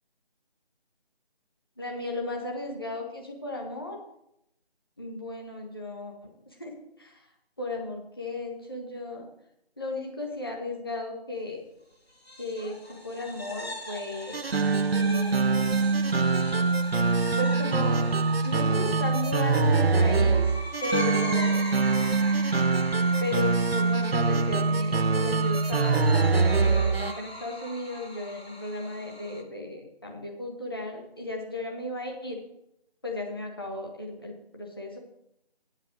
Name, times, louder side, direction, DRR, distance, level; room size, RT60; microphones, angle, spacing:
voice 1, 1.8-4.0 5.0-7.2 7.6-9.3 9.8-11.6 12.4-14.4 15.0-15.7 17.4-18.1 18.4-20.5 20.8-21.7 23.2-32.4 33.0-35.0, left 2 dB, 20° left, 0 dB, 1.6 m, -35 dB
sound 1, 12.1-29.4, equal, 75° left, 2.7 m, -40 dB
sound 2, 14.3-27.2, right 4 dB, 70° right, 0.6 m, -24 dB
9.0 x 7.4 x 6.4 m, 0.80 s
figure-of-eight pair, 170°, 32 cm